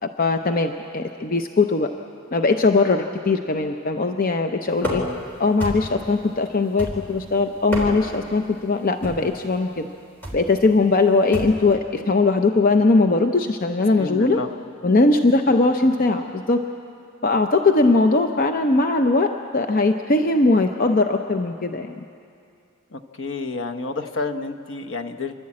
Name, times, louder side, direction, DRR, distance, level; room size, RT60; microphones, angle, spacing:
voice 1, 0.0-1.9 2.3-5.0 5.4-9.9 10.3-14.4 14.8-16.6 17.2-22.0, left 3 dB, 45° left, 5 dB, 0.7 m, -20 dB
voice 2, 4.8-5.2 14.0-14.5 22.9-25.3, left 3 dB, 65° left, 5 dB, 1.0 m, -30 dB
sound 1, 4.8-5.2 5.6-6.1 6.8-7.2 7.6-8.2 9.0-9.4 10.2-10.5 11.3-11.7, equal, 10° left, 3.8 m, -29 dB
28.0 x 11.5 x 8.6 m, 2.5 s
head